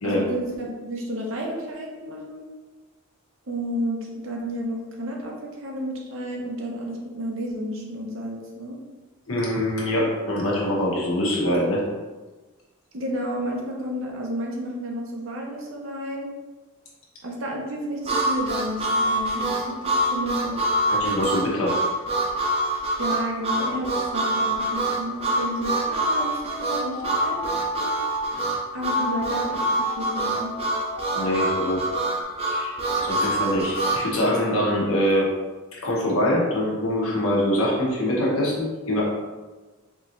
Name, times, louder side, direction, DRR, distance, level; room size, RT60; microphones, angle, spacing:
voice 1, 0.0-2.4 3.5-8.8 12.9-16.3 17.2-20.6 23.0-27.9 28.7-30.5, equal, 65° right, 0 dB, 0.8 m, -31 dB
voice 2, 9.3-11.8 20.9-21.8 31.1-35.3 35.7-39.0, left 1 dB, 85° left, -4 dB, 1.2 m, -24 dB
Harmonica, 18.1-34.0, right 1 dB, 30° right, 0.6 m, -25 dB
Native American flute de-noised and de-breathed, 26.2-28.4 28.9-32.2, equal, 25° left, 0.4 m, -34 dB
4.6 x 3.0 x 2.6 m, 1.3 s
head